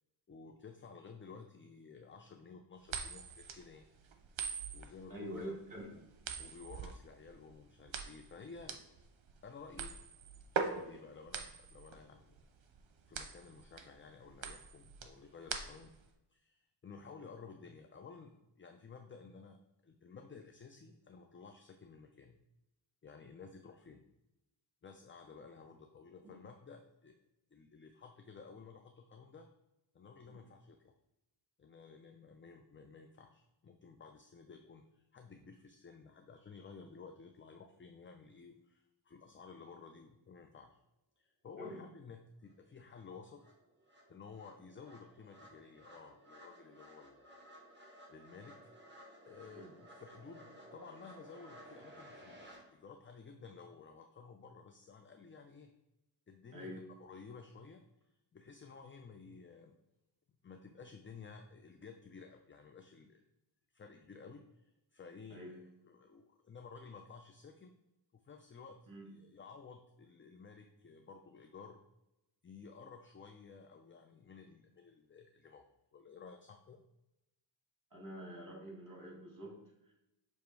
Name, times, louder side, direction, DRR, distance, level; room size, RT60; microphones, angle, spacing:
voice 1, 0.3-3.9 4.7-5.6 5.9-6.0 6.4-8.7 9.4-10.0 10.5-12.5 13.1-15.9 16.3-22.4 23.0-24.0 24.8-27.2 27.5-29.5 29.9-30.9 31.6-40.8 41.2-43.4 44.1-47.3 48.1-48.6 49.2-52.4 52.7-55.7 56.3-56.7 57.0-57.8 58.3-59.8 60.4-63.2 63.7-67.7 68.1-71.8 72.4-75.7 75.9-76.8, left 5 dB, 25° left, 5 dB, 0.4 m, -54 dB
sound 1, 2.9-16.1, right 6 dB, 75° right, 0.8 m, -42 dB
voice 2, 5.1-5.9 26.2-26.4 30.2-30.4 41.6-41.8 49.5-49.7 56.5-56.8 65.3-65.6 68.9-69.1 77.9-79.6, equal, 40° right, -1 dB, 2.2 m, -46 dB
sound 2, 42.5-42.6 42.9-52.6, equal, 20° right, 1.5 m, -57 dB
6.8 x 3.1 x 4.6 m, 0.89 s
wide cardioid pair, 100°, 48 cm